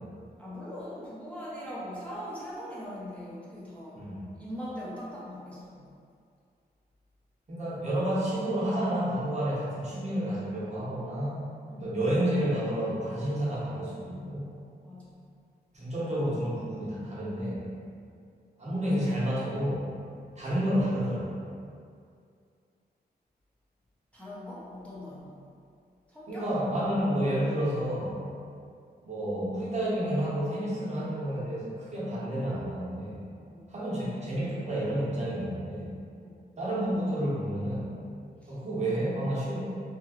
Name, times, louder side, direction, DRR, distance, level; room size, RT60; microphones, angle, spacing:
voice 1, 0.4-4.0 4.4-5.8 11.7-12.0 14.8-15.2 24.1-25.4 26.1-26.5 33.5-33.7 36.2-36.4 38.4-38.6, equal, 5° left, -9 dB, 0.5 m, -41 dB
voice 2, 7.5-11.4 11.8-14.5 15.7-17.6 18.6-19.9 20.4-21.3 26.3-28.2 29.0-33.2 33.7-35.9 36.6-37.9 38.5-39.6, right 1 dB, 40° right, -7 dB, 0.7 m, -30 dB
2.8 x 2.3 x 2.9 m, 2.3 s
wide cardioid pair, 135°, 17 cm